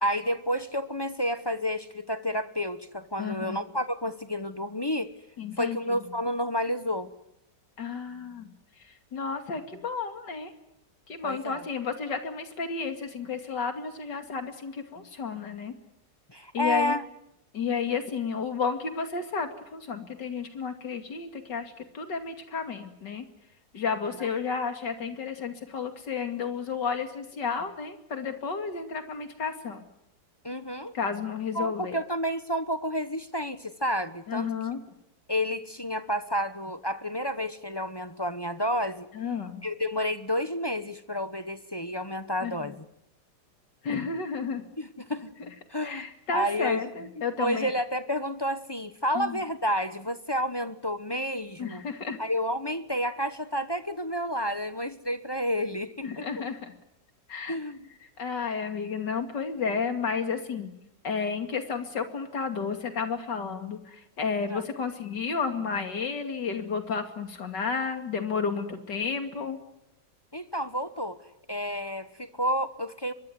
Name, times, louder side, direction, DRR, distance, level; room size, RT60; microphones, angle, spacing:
voice 1, 0.0-5.1 5.6-7.1 11.2-11.6 16.3-17.0 24.2-24.3 30.4-30.9 31.5-34.5 35.3-39.1 39.6-42.8 44.8-45.3 45.7-46.1 46.3-46.8 47.4-51.8 52.2-56.3 57.5-57.9 64.5-64.6 70.3-71.2 71.5-73.1, equal, 20° left, 10 dB, 0.7 m, -30 dB
voice 2, 3.2-3.6 5.4-6.0 7.8-8.5 8.8-10.5 11.1-15.7 16.5-17.0 17.5-23.3 23.7-29.8 30.9-32.0 34.3-34.8 39.1-39.6 42.4-42.7 43.8-44.6 45.4-45.5 45.8-47.7 49.1-49.4 51.6-52.2 56.0-56.7 57.3-57.6 58.2-60.7 61.0-69.6, left 5 dB, 70° left, 6 dB, 3.1 m, -32 dB
24.0 x 23.0 x 9.5 m, 0.81 s
omnidirectional pair, 2.0 m